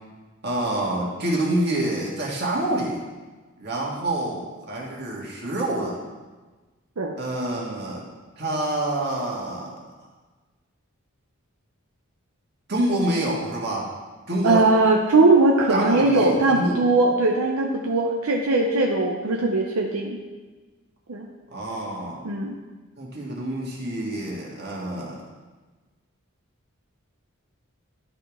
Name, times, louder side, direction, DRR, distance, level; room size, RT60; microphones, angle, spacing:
voice 1, 0.4-3.0 3.6-6.0 7.2-8.1 8.4-9.8 12.7-13.9 14.3-14.7 15.7-16.8 21.5-22.2 23.0-25.2, right 1 dB, 50° right, -3 dB, 1.8 m, -27 dB
voice 2, 14.4-20.2 21.1-21.3 22.2-22.5, right 2 dB, 80° right, 0 dB, 0.7 m, -20 dB
12.0 x 5.2 x 3.6 m, 1.3 s
head